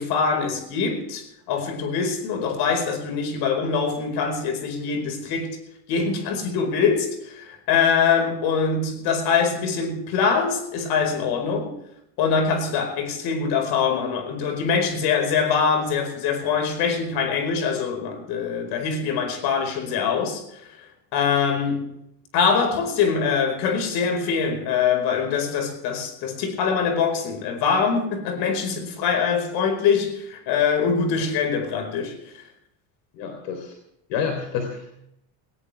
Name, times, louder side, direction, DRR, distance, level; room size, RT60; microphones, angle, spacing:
voice 1, 0.0-5.6 5.9-7.1 7.3-11.7 12.2-20.4 21.1-21.9 22.3-32.2, left 6 dB, 65° left, 4.9 m, -23 dB
voice 2, 33.1-33.8 34.1-34.9, left 6 dB, 80° left, 3.6 m, -29 dB
19.5 x 19.0 x 3.4 m
cardioid pair, 150°, 41 cm